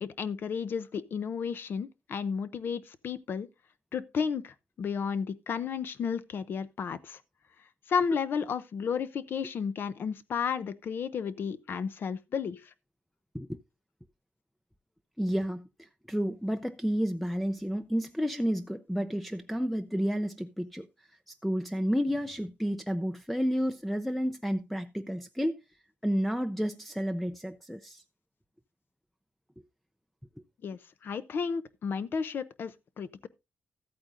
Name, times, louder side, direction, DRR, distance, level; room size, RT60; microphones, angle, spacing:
voice 1, 0.0-3.5 3.9-7.2 7.9-12.7 30.6-33.3, left 6 dB, 60° left, 0.7 m, -33 dB
voice 2, 15.2-20.9 21.3-25.6 26.0-28.0, equal, ahead, 0.5 m, -31 dB
14.5 x 8.7 x 2.5 m
wide cardioid pair, 130°, 4 cm